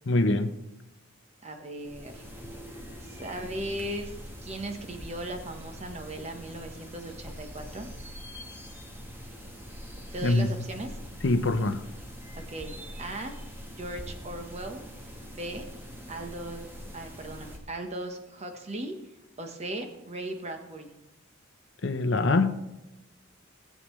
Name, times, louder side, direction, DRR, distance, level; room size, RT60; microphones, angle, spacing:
voice 1, 0.1-0.5 10.2-10.5 11.2-11.8 21.8-22.6, left 2 dB, 60° left, 9 dB, 0.7 m, -24 dB
voice 2, 1.4-2.3 3.0-4.1 4.4-7.9 10.1-10.9 12.5-13.3 13.7-14.8 15.3-15.6 16.1-16.7 16.9-18.9 19.4-20.9, right 1 dB, 30° right, 5 dB, 1.1 m, -37 dB
sound 1, 1.8-17.6, equal, 10° right, 1.2 m, -43 dB
18.0 x 7.6 x 3.1 m, 0.95 s
head